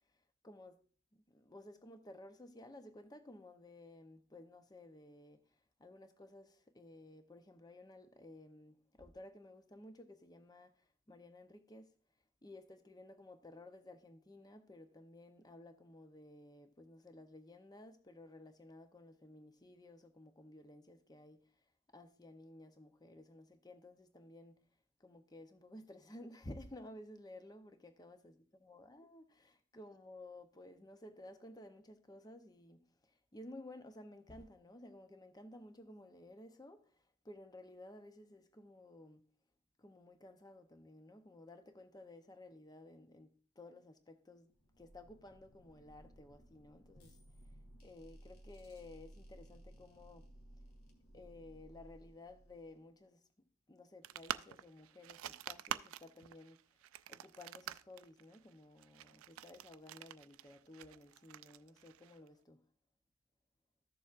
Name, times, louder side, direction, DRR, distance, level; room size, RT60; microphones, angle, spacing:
voice 1, 0.4-0.8 1.1-12.0 12.4-21.5 21.9-24.6 25.0-28.3 28.6-39.2 39.8-44.5 44.8-47.2 47.4-47.6 47.8-50.3 51.1-56.6 57.1-62.6, left 1 dB, 20° left, 0.7 m, -55 dB
sound 1, 44.5-53.0, right 1 dB, 85° left, 2.1 m, -59 dB
sound 2, 54.0-62.3, right 11 dB, 70° right, 0.3 m, -47 dB
14.0 x 6.9 x 2.5 m
head